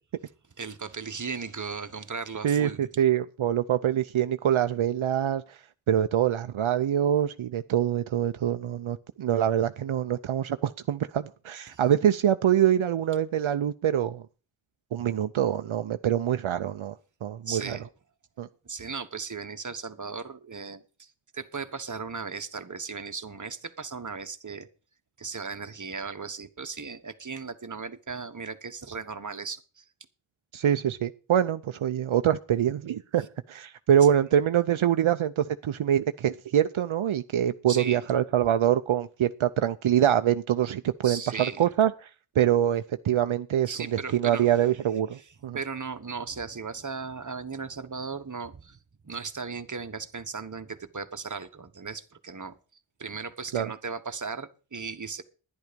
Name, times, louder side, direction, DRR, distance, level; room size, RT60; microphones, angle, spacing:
voice 1, 0.6-2.9 11.7-11.8 17.5-17.9 18.6-24.7 25.2-29.8 37.7-38.1 41.0-41.7 43.7-44.5 45.1-48.8 49.0-52.6 53.0-55.2, right 5 dB, 40° right, 1.2 m, -37 dB
voice 2, 2.4-5.6 5.9-14.2 14.9-16.9 17.2-17.8 18.4-18.5 30.5-41.9 42.4-45.6 53.5-53.7, right 10 dB, 80° right, 0.6 m, -25 dB
11.0 x 10.5 x 5.1 m
wide cardioid pair, 70°, 47 cm